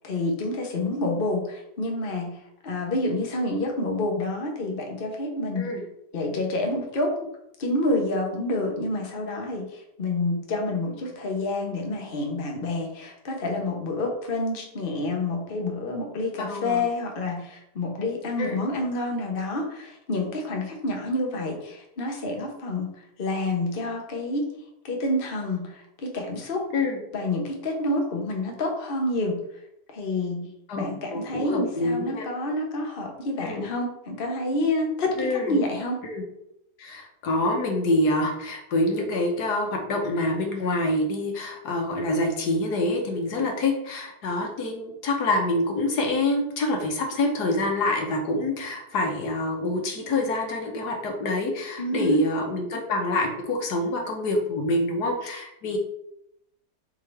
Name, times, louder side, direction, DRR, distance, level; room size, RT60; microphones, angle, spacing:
voice 1, 0.0-5.7 6.1-7.1 7.6-22.9 23.2-24.5 24.8-26.7 27.1-29.4 29.9-30.5 30.8-36.0 51.8-52.2, left 2 dB, 40° left, 1 dB, 1.1 m, -28 dB
voice 2, 16.4-16.8 18.4-18.6 26.7-27.0 30.7-32.3 33.4-33.6 35.2-35.6 36.0-36.2 36.8-55.8, left 2 dB, 75° left, 2 dB, 1.6 m, -26 dB
7.4 x 3.8 x 3.3 m, 0.78 s
omnidirectional pair, 1.7 m